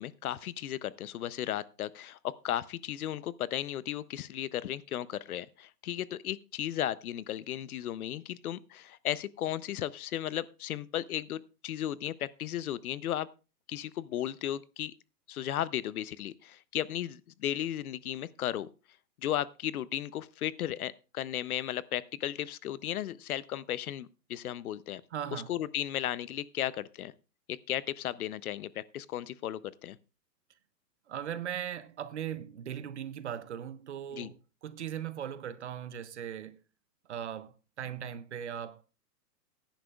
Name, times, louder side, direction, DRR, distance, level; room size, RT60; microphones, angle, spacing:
voice 1, 0.0-13.3 13.7-14.9 15.3-18.7 19.2-25.0 25.3-27.1 27.5-30.0 34.1-34.3, left 12 dB, 60° left, 0.6 m, -35 dB
voice 2, 25.1-25.5 31.1-36.6 37.1-38.8, right 9 dB, 45° right, 0.6 m, -39 dB
17.0 x 10.0 x 2.3 m
hypercardioid pair, 175°, 49 cm